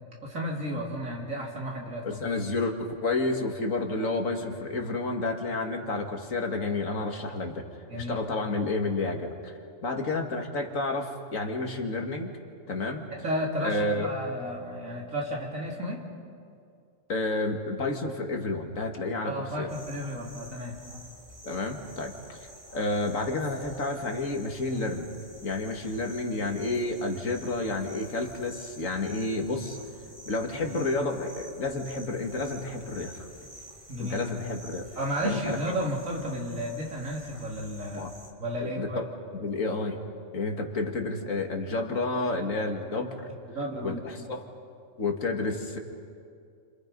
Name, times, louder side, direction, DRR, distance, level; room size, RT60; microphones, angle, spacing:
voice 1, 0.2-2.2 7.9-8.2 13.1-16.0 19.2-20.8 33.9-34.2 35.0-38.1 38.4-39.0 43.5-44.0, equal, 85° right, -2 dB, 3.9 m, -33 dB
voice 2, 2.0-7.6 7.9-12.3 12.7-13.0 13.6-14.1 17.1-19.7 21.4-22.4 22.7-25.1 25.4-29.8 30.2-33.3 34.0-34.9 35.2-35.6 37.9-38.1 38.6-39.1 39.3-40.0 40.3-43.3 43.8-44.4 45.0-45.8, left 2 dB, 80° left, 3 dB, 2.4 m, -30 dB
sound 1, 19.7-38.3, equal, 25° right, 2.6 m, -49 dB
30.0 x 26.5 x 5.3 m, 2.3 s
omnidirectional pair, 1.4 m